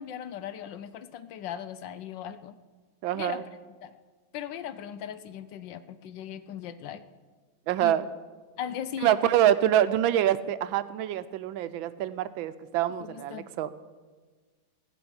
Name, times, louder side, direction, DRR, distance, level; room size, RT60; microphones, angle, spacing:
voice 1, 0.0-2.5 3.1-4.0 4.3-7.0 7.8-8.0 8.6-9.2 13.0-13.5, left 9 dB, 70° left, 13 dB, 1.2 m, -38 dB
voice 2, 3.0-3.4 7.7-8.1 9.0-13.7, right 11 dB, 80° right, 13 dB, 1.3 m, -25 dB
16.5 x 6.1 x 9.6 m, 1.4 s
omnidirectional pair, 2.2 m